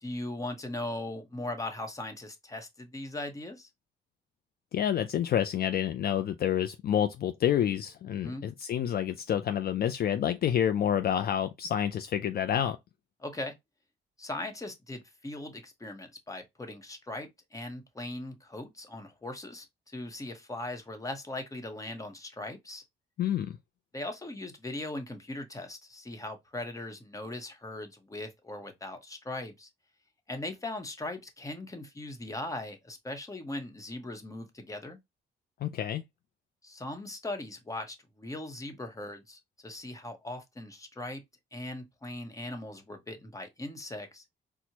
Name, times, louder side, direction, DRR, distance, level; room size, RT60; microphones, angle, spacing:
voice 1, 0.0-3.7 8.2-8.4 13.2-13.6 14.2-22.8 23.9-29.7 30.3-35.0 36.6-41.2 41.5-44.2, left 2 dB, 15° left, 0.9 m, -39 dB
voice 2, 4.7-12.8 23.2-23.6 35.6-36.0, left 10 dB, 50° left, 0.4 m, -28 dB
4.3 x 2.1 x 2.8 m
cardioid pair, 90°, 20 cm